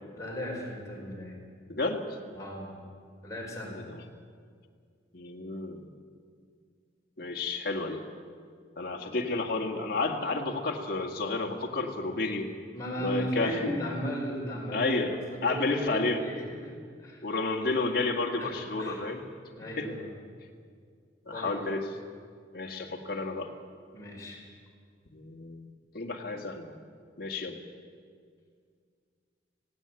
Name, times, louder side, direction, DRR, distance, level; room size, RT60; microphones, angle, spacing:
voice 1, 0.1-1.4 2.3-2.7 3.2-3.8 12.7-14.9 15.3-16.7 17.0-17.3 18.4-19.0 19.6-20.1 21.3-21.6 23.9-24.4, equal, 20° left, -3 dB, 5.3 m, -36 dB
voice 2, 1.7-2.0 3.7-4.0 5.1-5.9 7.2-8.0 8.8-12.5 13.0-13.7 14.7-16.2 17.2-19.2 19.8-19.9 21.2-21.9 22.5-23.5 25.1-25.7 25.9-26.8 27.2-27.6, left 3 dB, 55° left, 1 dB, 2.0 m, -31 dB
17.5 x 17.0 x 9.0 m, 2.1 s
head